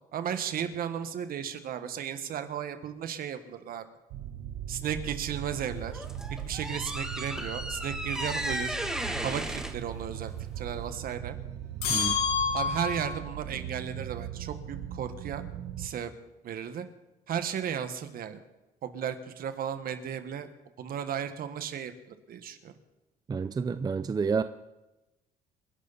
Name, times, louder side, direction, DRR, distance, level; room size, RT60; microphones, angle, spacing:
voice 1, 0.1-3.9 4.7-6.0 6.4-8.8 9.2-11.4 12.5-15.4 15.8-16.1 16.4-16.9 17.3-18.4 18.8-20.5 20.8-22.7, right 8 dB, 60° right, 9 dB, 1.6 m, -35 dB
sound 1, 4.1-15.9, right 10 dB, 85° right, 1.3 m, -39 dB
sound 2, 5.7-10.9, right 1 dB, 5° right, 1.3 m, -35 dB
sound 3, 11.8-13.2, left 6 dB, 75° left, 7.6 m, -28 dB
voice 2, 23.3-24.4, right 5 dB, 25° right, 12 dB, 0.5 m, -29 dB
27.5 x 11.0 x 4.2 m, 1.0 s
cardioid pair, 110°, 17 cm